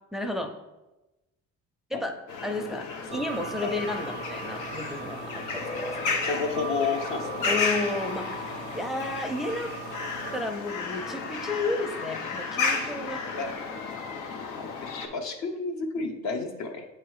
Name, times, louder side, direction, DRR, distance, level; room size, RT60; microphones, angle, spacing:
voice 1, 0.1-0.5 1.9-2.1 2.4-2.8 3.1-6.1 7.5-9.8 10.3-13.2, left 2 dB, ahead, 5 dB, 0.5 m, -32 dB
sound 1, 2.3-15.1, left 4 dB, 90° left, 0.8 m, -33 dB
sound 2, 3.1-10.4, right 8 dB, 85° right, 0.5 m, -41 dB
voice 2, 6.3-7.5 13.3-13.5 14.5-14.7 15.1-16.9, left 4 dB, 65° left, 4 dB, 1.0 m, -31 dB
7.8 x 3.0 x 4.7 m, 1.0 s
cardioid pair, 90°, 30 cm